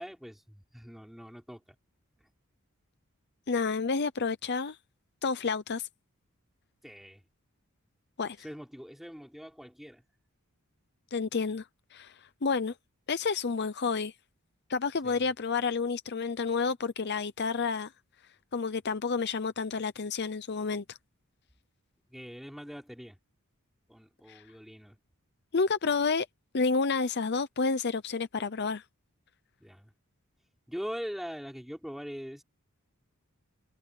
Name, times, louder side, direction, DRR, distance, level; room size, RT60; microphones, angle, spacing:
voice 1, 0.0-1.8 6.8-7.2 8.4-10.0 15.0-15.3 22.1-23.2 23.9-25.0 29.6-29.9 30.7-32.4, equal, ahead, 5.6 m, -42 dB
voice 2, 3.5-4.8 5.2-5.9 8.2-8.4 11.1-11.7 11.9-12.7 13.1-14.1 14.7-17.9 18.5-21.0 24.3-24.4 25.5-26.3 26.5-28.8, left 4 dB, 50° left, 0.7 m, -30 dB
head